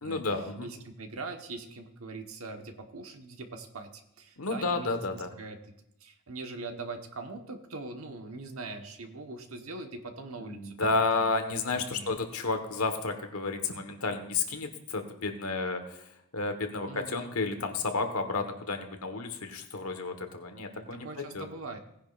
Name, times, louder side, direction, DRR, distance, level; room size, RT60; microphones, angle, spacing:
voice 1, 0.0-0.7 4.4-5.3 10.4-21.5, left 3 dB, 80° left, 6 dB, 1.5 m, -32 dB
voice 2, 0.6-5.6 6.0-11.3 11.7-12.1 16.9-17.4 20.8-21.8, right 3 dB, 70° right, 5 dB, 1.3 m, -42 dB
18.0 x 10.0 x 2.5 m, 0.80 s
head